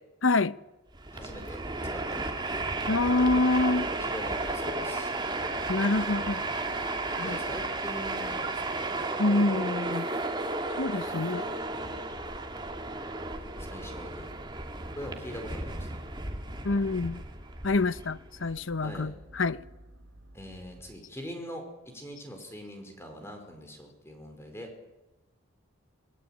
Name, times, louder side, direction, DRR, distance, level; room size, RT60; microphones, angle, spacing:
voice 1, 0.2-0.6 2.9-3.9 5.7-6.4 7.2-7.4 9.2-10.1 10.8-11.4 16.6-17.2 17.6-19.6, left 2 dB, 65° left, 0.9 m, -26 dB
Train, 0.9-18.5, right 2 dB, 20° right, 2.4 m, -33 dB
voice 2, 1.1-1.6 1.9-2.4 4.0-5.1 7.1-8.8 11.0-12.1 13.6-14.3 15.0-15.9 18.8-19.1 20.3-24.7, equal, 10° left, 5.1 m, -43 dB
sound 1, 13.5-21.0, equal, 60° right, 2.2 m, -54 dB
27.5 x 20.5 x 9.2 m
head